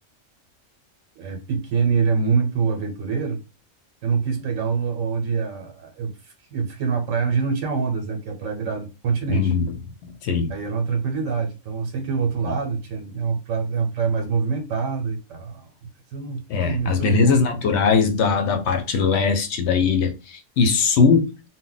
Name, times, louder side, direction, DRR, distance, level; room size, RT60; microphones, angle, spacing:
voice 1, 1.2-3.4 4.0-9.5 10.5-17.4, right 5 dB, 85° right, 3 dB, 1.0 m, -25 dB
voice 2, 9.3-9.7 10.0-10.5 12.4-12.5 16.5-21.3, left 5 dB, 65° left, 5 dB, 0.8 m, -20 dB
2.1 x 2.1 x 3.8 m, 0.29 s
omnidirectional pair, 1.3 m